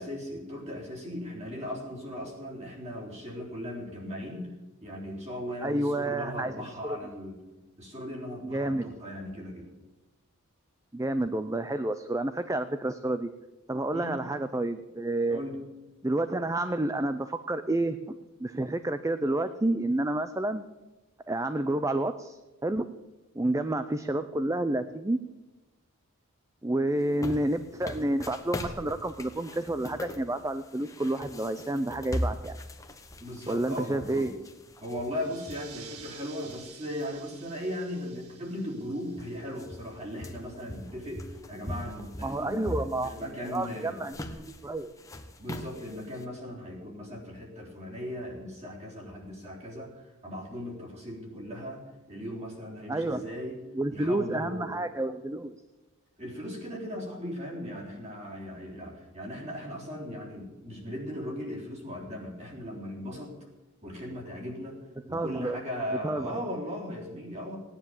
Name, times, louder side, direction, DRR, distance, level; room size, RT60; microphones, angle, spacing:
voice 1, 0.0-4.5 4.8-7.4 7.8-9.7 13.9-14.2 15.3-15.6 33.2-34.3 34.8-42.8 43.0-44.0 45.4-53.6 53.9-54.8 56.2-63.3 63.8-64.8 65.1-67.6, equal, 30° right, -2 dB, 3.8 m, -38 dB
voice 2, 5.6-6.5 6.8-7.0 8.4-8.9 10.9-13.3 13.7-15.4 16.0-20.6 21.3-22.9 23.3-25.2 26.6-32.6 33.5-34.4 42.2-43.1 43.5-44.9 52.9-53.3 53.7-55.6 65.1-65.6 66.0-66.5, right 1 dB, 15° right, 11 dB, 0.5 m, -29 dB
sound 1, 27.0-37.1 37.5-37.6 38.5-38.6 38.8-46.3, equal, 15° left, 1.1 m, -40 dB
sound 2, 35.1-40.3, right 7 dB, 75° right, 1.7 m, -51 dB
17.5 x 10.0 x 7.2 m, 1.1 s
head